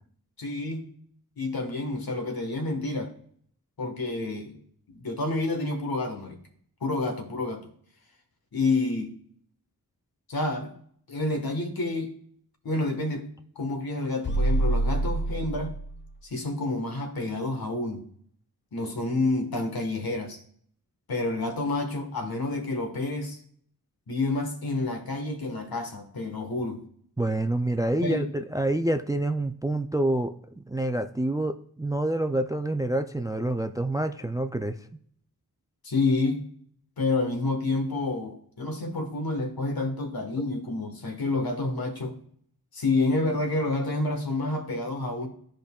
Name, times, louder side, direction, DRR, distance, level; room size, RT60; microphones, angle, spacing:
voice 1, 0.4-0.9 1.4-3.1 3.8-4.6 4.9-6.4 6.8-7.7 8.5-9.1 10.3-10.7 11.1-12.1 12.6-13.3 13.5-15.8 16.2-18.1 18.7-20.4 21.1-23.4 24.1-26.8 28.0-28.3 35.8-36.4 37.0-42.2 42.7-45.3, left 2 dB, 75° left, 4 dB, 1.4 m, -29 dB
sound 1, 14.2-16.1, right 2 dB, 30° left, 0.7 m, -26 dB
voice 2, 27.2-34.8, right 1 dB, 10° right, 9 dB, 0.3 m, -27 dB
13.0 x 5.1 x 2.3 m, 0.62 s
wide cardioid pair, 105°, 37 cm